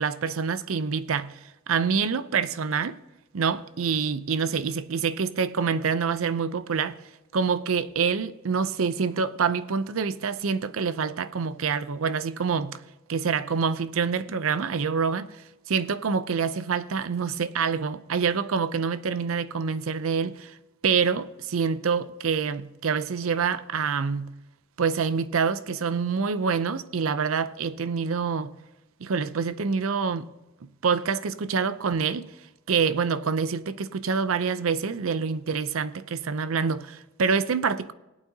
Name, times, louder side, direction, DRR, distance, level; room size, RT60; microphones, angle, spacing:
voice 1, 0.0-1.4 1.7-3.0 3.3-7.0 7.3-12.8 13.1-15.4 15.7-20.6 20.8-24.3 24.8-28.5 29.0-30.3 30.8-32.3 32.7-37.9, right 5 dB, 80° right, 0.6 m, -26 dB
19.0 x 8.6 x 2.8 m
head